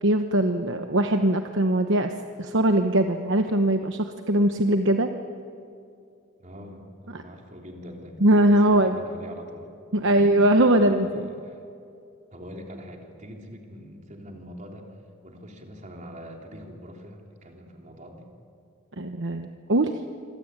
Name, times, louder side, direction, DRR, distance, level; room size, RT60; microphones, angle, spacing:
voice 1, 0.0-2.1 2.4-5.1 8.2-9.0 9.9-11.2 19.0-19.9, right 1 dB, 60° right, 6 dB, 1.1 m, -21 dB
voice 2, 6.4-8.2 8.5-9.7 10.0-10.3 10.8-11.6 12.3-14.9 15.2-18.3, equal, 35° right, 1 dB, 3.7 m, -43 dB
26.5 x 25.0 x 9.0 m, 2.5 s
head